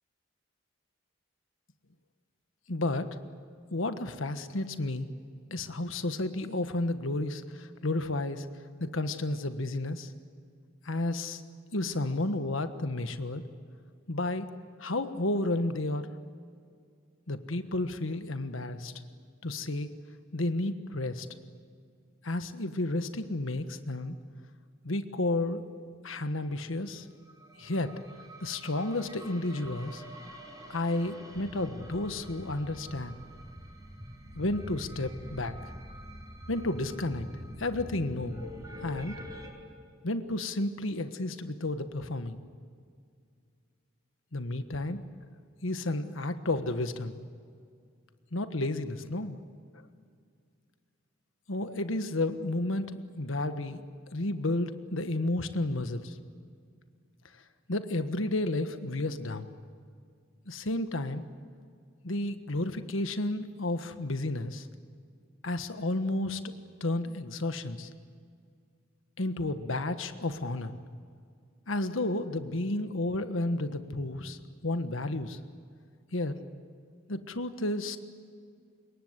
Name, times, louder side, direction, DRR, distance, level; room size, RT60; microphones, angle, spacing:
voice 1, 2.7-3.1 3.7-5.1 5.5-8.5 8.8-10.1 10.8-11.4 11.7-13.4 14.1-14.5 14.8-16.1 17.3-18.9 19.4-19.9 20.3-21.3 22.2-24.2 24.8-25.7 26.0-27.1 27.6-27.9 28.4-30.0 30.7-33.2 34.3-35.5 36.5-37.3 37.6-38.4 38.8-39.2 40.0-42.4 44.3-45.0 45.6-47.1 48.3-49.4 51.5-52.9 53.2-53.8 54.1-56.2 57.7-59.5 60.5-61.2 62.0-64.7 65.4-66.5 66.8-67.9 69.2-70.7 71.7-74.4 74.6-75.4 76.1-76.4 77.1-78.0, left 2 dB, 80° left, 9 dB, 1.4 m, -32 dB
sound 1, 27.2-39.5, equal, 15° right, 6.1 m, -45 dB
26.5 x 22.5 x 8.2 m, 2.2 s
head